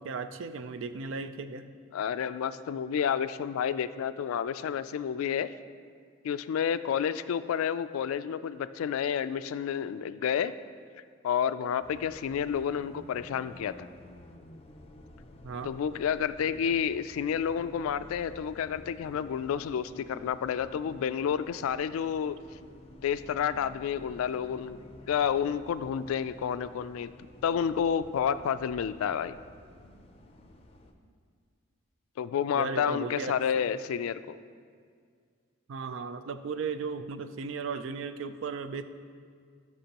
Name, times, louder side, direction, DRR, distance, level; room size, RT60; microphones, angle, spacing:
voice 1, 0.0-1.7 15.4-15.7 32.5-33.4 35.7-38.8, right 4 dB, 65° right, 11 dB, 0.4 m, -36 dB
voice 2, 1.9-5.5 6.2-10.5 11.2-13.9 15.6-22.4 23.0-24.8 25.1-27.1 27.4-29.4 32.2-34.4, left 8 dB, 85° left, 14 dB, 0.3 m, -30 dB
Bus, 11.8-30.9, left 1 dB, 30° left, 0.5 m, -52 dB
13.0 x 6.0 x 2.9 m, 2.1 s
head